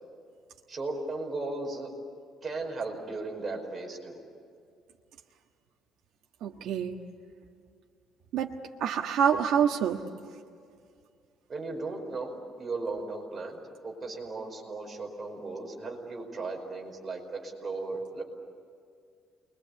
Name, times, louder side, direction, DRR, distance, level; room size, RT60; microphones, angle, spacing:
voice 1, 0.7-1.9 2.4-4.2 11.5-18.2, right 3 dB, 20° right, 0 dB, 5.1 m, -36 dB
voice 2, 6.4-7.0 8.3-8.5 8.8-10.0, right 8 dB, 70° right, 0 dB, 1.4 m, -26 dB
29.0 x 22.5 x 8.5 m, 2.2 s
cardioid pair, 165°, 0 cm